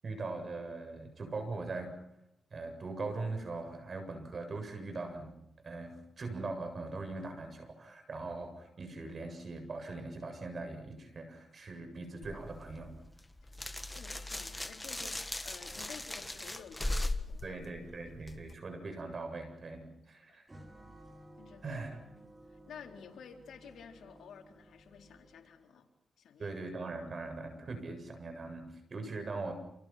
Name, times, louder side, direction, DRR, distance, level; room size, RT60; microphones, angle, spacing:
voice 1, 0.0-2.0 2.5-5.4 5.6-12.9 17.4-20.5 21.6-22.0 26.4-29.5, right 3 dB, 50° right, 6 dB, 7.6 m, -41 dB
sound 1, 12.2-18.5, left 1 dB, 10° left, 1.7 m, -39 dB
voice 2, 13.9-17.7 20.0-20.4 21.4-21.8 22.2-25.9 26.2-26.6, left 6 dB, 85° left, 3 dB, 4.2 m, -52 dB
sound 2, 20.5-25.6, right 1 dB, 20° right, 5.7 m, -56 dB
29.0 x 29.0 x 6.0 m, 0.82 s
cardioid pair, 85°, 0 cm